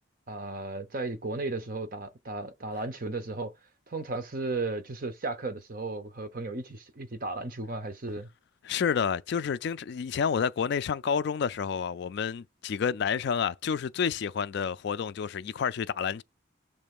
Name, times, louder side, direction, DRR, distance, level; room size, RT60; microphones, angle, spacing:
voice 1, 0.3-3.5 3.9-8.3, right 3 dB, 45° right, 0.8 m, -35 dB
voice 2, 8.6-16.2, left 7 dB, 55° left, 0.3 m, -29 dB
6.8 x 3.2 x 5.3 m
head